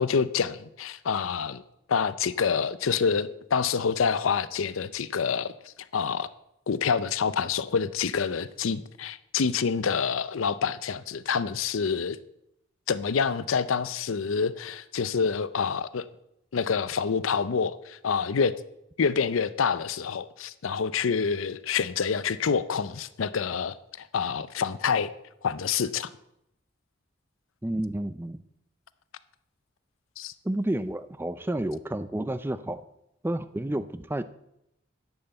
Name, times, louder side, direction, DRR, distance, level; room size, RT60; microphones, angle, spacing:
voice 1, 0.0-1.6 1.9-5.5 5.9-6.3 6.7-12.2 12.9-16.1 16.5-18.6 19.0-25.1 25.4-26.1 30.2-30.3, left 6 dB, 85° left, 0.5 m, -27 dB
voice 2, 27.6-28.4 30.4-32.8 33.2-34.2, right 1 dB, 10° right, 0.4 m, -30 dB
11.0 x 5.7 x 7.9 m
head